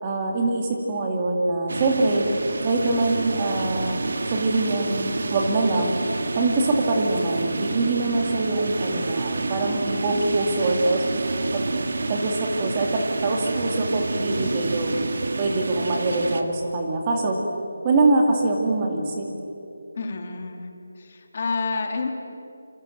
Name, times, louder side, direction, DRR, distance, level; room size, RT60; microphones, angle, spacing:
voice 1, 0.0-2.3 2.6-4.0 4.3-5.9 6.3-11.1 11.5-11.6 12.1-12.9 13.2-17.4 17.8-19.3, right 2 dB, 15° right, 1 dB, 2.3 m, -24 dB
sound 1, 1.7-16.4, right 3 dB, 50° right, 1.8 m, -28 dB
voice 2, 20.0-20.7 20.9-22.1, left 4 dB, 30° left, 4 dB, 2.4 m, -29 dB
26.5 x 26.0 x 7.9 m, 2.8 s
figure-of-eight pair, 180°, 0 cm